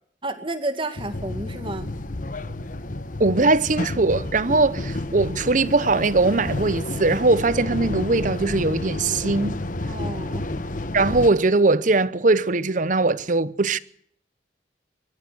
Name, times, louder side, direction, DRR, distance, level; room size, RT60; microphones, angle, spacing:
voice 1, 0.2-1.9 9.9-10.4, right 2 dB, 30° right, 2.1 m, -31 dB
sound 1, 1.0-11.3, left 2 dB, 45° left, 1.2 m, -30 dB
voice 2, 3.2-9.6 10.9-13.8, right 3 dB, 45° right, 0.8 m, -20 dB
23.0 x 14.0 x 8.1 m
head